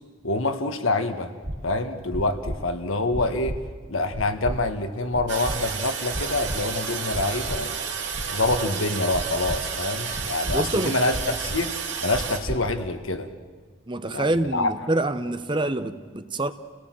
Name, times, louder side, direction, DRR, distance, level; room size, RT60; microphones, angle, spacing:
voice 1, 0.2-1.3 1.6-3.6 3.9-7.8 8.3-11.7 12.0-13.3 14.1-14.7, left 2 dB, 85° left, 1.7 m, -26 dB
sound 1, 1.4-1.6 2.1-2.6 3.1-3.6 4.1-4.6 5.1-5.6 6.1-6.6 7.1-7.6 8.1-8.6 9.1-9.6 10.1-10.6 11.1-11.6 12.1-12.6, right 1 dB, 40° right, 2.1 m, -31 dB
Toilet flush, 5.3-12.4, right 6 dB, 60° right, 2.7 m, -31 dB
voice 2, 10.5-11.0 13.9-16.5, right 2 dB, 25° right, 0.8 m, -26 dB
29.0 x 17.5 x 7.7 m
head